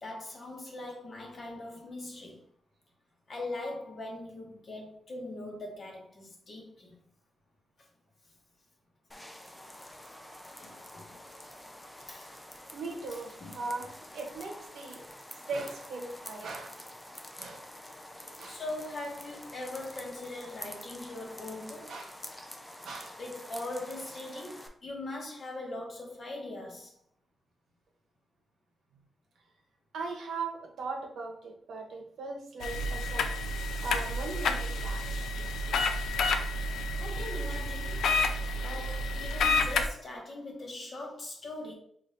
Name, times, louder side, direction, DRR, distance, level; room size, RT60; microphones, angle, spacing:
voice 1, 0.0-2.4 3.3-7.0 10.6-11.2 12.1-12.4 13.4-13.6 18.4-21.9 23.2-26.9 36.6-36.7 37.0-38.4 38.6-41.7, left 2 dB, 40° left, 0.9 m, -41 dB
sound 1, 9.1-24.7, left 1 dB, 10° left, 0.4 m, -47 dB
voice 2, 12.7-13.9 14.1-15.0 15.5-16.8 17.4-17.6 18.4-18.6 21.9-22.1 22.8-23.2 29.9-33.3 33.8-35.2, right 3 dB, 85° right, 0.9 m, -39 dB
sound 2, 32.6-39.9, left 2 dB, 85° left, 0.4 m, -30 dB
4.9 x 2.5 x 2.7 m
wide cardioid pair, 155°, 0 cm